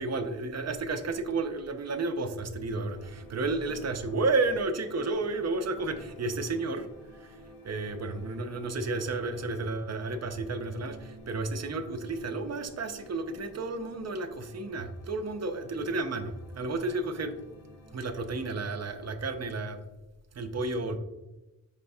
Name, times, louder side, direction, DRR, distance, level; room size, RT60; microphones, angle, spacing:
voice 1, 0.0-6.9 7.2-7.4 7.6-17.3 17.9-19.8 20.3-21.0, right 3 dB, 50° right, 8 dB, 0.5 m, -32 dB
sound 1, 2.9-19.2, right 1 dB, 80° left, 0.8 m, -52 dB
4.9 x 3.4 x 2.6 m, 1.0 s
wide cardioid pair, 115°, 35 cm